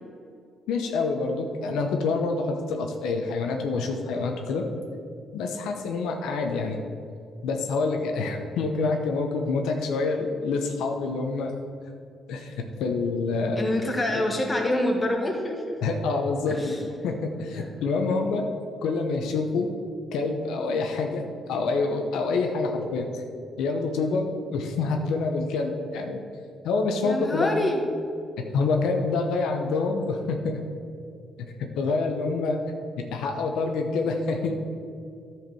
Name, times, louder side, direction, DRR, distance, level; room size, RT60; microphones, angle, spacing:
voice 1, 0.7-4.7 5.3-6.8 7.4-11.5 12.3-13.6 14.1-14.2 15.8-16.8 17.0-18.5 18.8-19.7 20.1-23.2 23.6-26.2 26.6-27.5 28.5-30.6 31.4-32.6 33.1-34.5, left 3 dB, 85° left, 3 dB, 0.9 m, -27 dB
voice 2, 13.5-15.8 16.5-16.8 17.5-17.7 27.0-27.8, left 1 dB, 20° left, 2 dB, 1.6 m, -26 dB
10.5 x 4.8 x 6.2 m, 2.4 s
cardioid pair, 90°, 0 cm